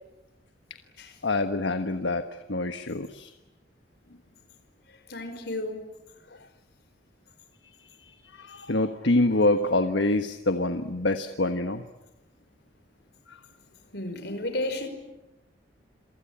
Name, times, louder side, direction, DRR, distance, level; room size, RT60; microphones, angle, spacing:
voice 1, 1.2-2.2 2.5-3.3 8.5-11.8, left 2 dB, 80° left, 1.3 m, -25 dB
voice 2, 5.1-5.8 13.9-14.9, left 1 dB, 60° left, 5.2 m, -32 dB
27.5 x 24.0 x 8.8 m
head